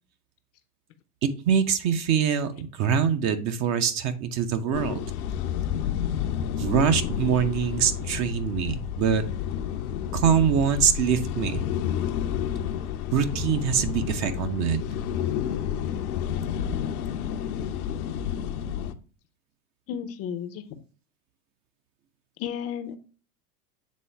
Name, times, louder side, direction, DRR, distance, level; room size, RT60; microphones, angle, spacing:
voice 1, 1.2-5.0 6.6-9.2 10.1-11.7 13.1-14.8, right 7 dB, 35° right, 9 dB, 0.7 m, -24 dB
sound 1, 4.7-18.9, left 9 dB, 70° left, 0.7 m, -30 dB
voice 2, 19.9-20.8 22.4-23.0, left 8 dB, 35° left, 10 dB, 0.6 m, -33 dB
7.4 x 3.8 x 3.3 m, 0.37 s
hypercardioid pair, 85°, 46 cm